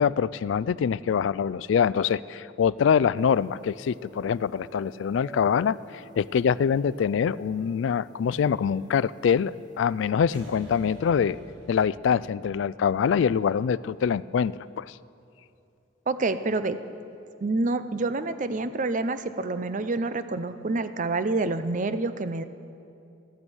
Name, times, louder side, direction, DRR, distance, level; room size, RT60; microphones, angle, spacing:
voice 1, 0.0-5.8 6.2-11.4 11.7-14.9, left 7 dB, 70° left, 20 dB, 0.3 m, -24 dB
sound 1, 3.1-10.1, right 1 dB, 20° right, 1.4 m, -51 dB
sound 2, 10.3-15.2, right 1 dB, 70° right, 2.5 m, -49 dB
voice 2, 16.1-16.8 17.4-22.4, right 3 dB, 40° right, 12 dB, 0.6 m, -27 dB
14.5 x 14.0 x 6.3 m, 2.6 s
head